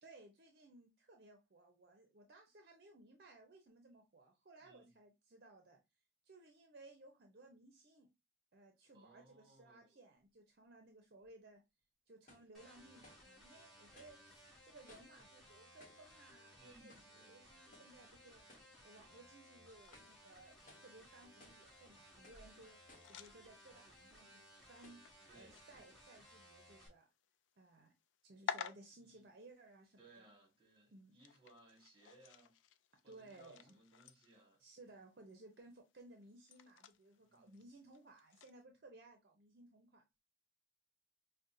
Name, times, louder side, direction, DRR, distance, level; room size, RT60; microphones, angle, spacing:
voice 1, 0.0-5.8 6.2-8.1 8.5-11.6 12.1-18.4 18.8-22.8 23.1-27.1 27.6-27.9 28.2-30.3 30.9-31.2 33.1-33.8 34.6-40.2, right 2 dB, 55° right, 0.6 m, -60 dB
voice 2, 4.6-5.0 8.9-10.0 16.5-17.4 25.3-25.9 29.0-29.2 30.0-32.5 33.0-34.6 37.2-37.6, right 2 dB, 25° right, 1.5 m, -65 dB
sound 1, 11.2-11.3 12.3-12.5 13.0-13.3 14.0-14.2 14.9-15.2 15.8-16.1 16.9-17.2 17.7-18.0 18.5-18.8 19.2-19.3 19.8-20.2 20.7-20.9 21.4-21.7 22.2-22.5 22.9-23.2 23.9-24.0 24.8-25.1, left 1 dB, 45° left, 1.1 m, -63 dB
sound 2, 12.5-26.9, equal, ahead, 1.4 m, -62 dB
sound 3, 19.8-38.6, left 7 dB, 80° left, 0.3 m, -54 dB
5.1 x 2.2 x 2.6 m
head